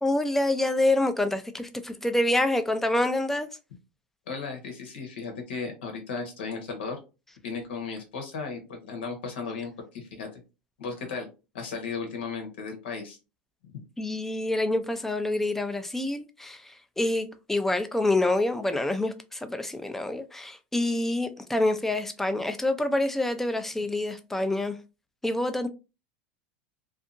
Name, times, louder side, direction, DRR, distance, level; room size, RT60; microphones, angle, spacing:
voice 1, 0.0-3.5 14.0-24.8 25.2-25.7, left 1 dB, 5° left, 0.4 m, -27 dB
voice 2, 4.3-7.0 7.4-10.4 10.8-11.3 11.5-13.2, left 5 dB, 85° left, 1.0 m, -35 dB
2.7 x 2.4 x 2.5 m
supercardioid pair, 115°, 6 cm